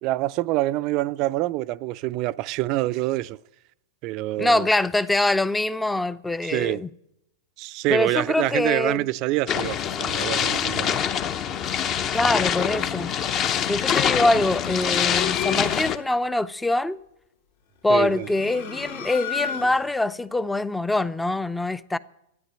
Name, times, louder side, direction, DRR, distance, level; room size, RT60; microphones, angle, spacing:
voice 1, 0.0-3.4 4.0-4.7 6.4-6.8 7.6-11.0 17.9-18.3, right 18 dB, 45° right, 0.4 m, -26 dB
voice 2, 4.4-6.9 7.9-9.1 12.1-13.2 13.7-17.0 17.8-22.0, left 2 dB, 5° left, 0.5 m, -24 dB
sound 1, 9.5-16.0, left 8 dB, 35° left, 0.8 m, -25 dB
sound 2, 14.5-16.1 17.9-20.0, left 8 dB, 70° left, 2.2 m, -32 dB
13.0 x 9.6 x 8.7 m
hypercardioid pair, 115°, 0 cm